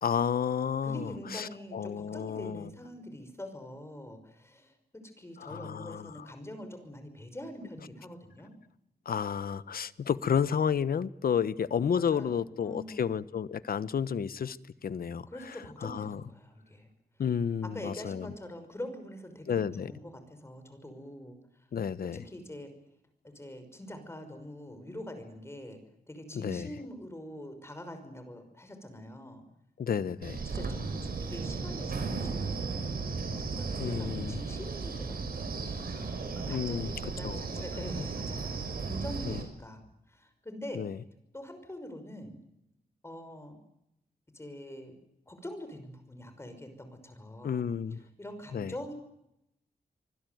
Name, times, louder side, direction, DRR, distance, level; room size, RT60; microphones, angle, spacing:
voice 1, 0.0-2.7 5.4-6.3 9.0-14.6 14.8-15.3 15.8-16.2 17.2-18.3 19.5-19.9 21.7-22.2 26.3-26.7 29.8-30.4 33.8-34.4 36.5-36.9 37.2-37.4 37.9-38.0 39.2-39.4 40.7-41.0 47.4-48.0 48.5-48.7, left 7 dB, 70° left, 16 dB, 1.1 m, -31 dB
voice 2, 0.8-8.5 11.9-13.1 15.3-16.9 17.7-21.7 22.1-22.7 23.2-25.8 26.1-29.4 30.4-35.9 36.3-38.6 38.8-40.8 41.3-42.4 43.0-43.6 44.3-45.0 45.3-47.7 48.2-48.9, left 1 dB, 15° left, 8 dB, 5.7 m, -44 dB
Wind, 30.2-39.4, right 4 dB, 70° right, 5.9 m, -35 dB
25.5 x 21.0 x 9.4 m, 0.81 s
wide cardioid pair, 130°, 16 cm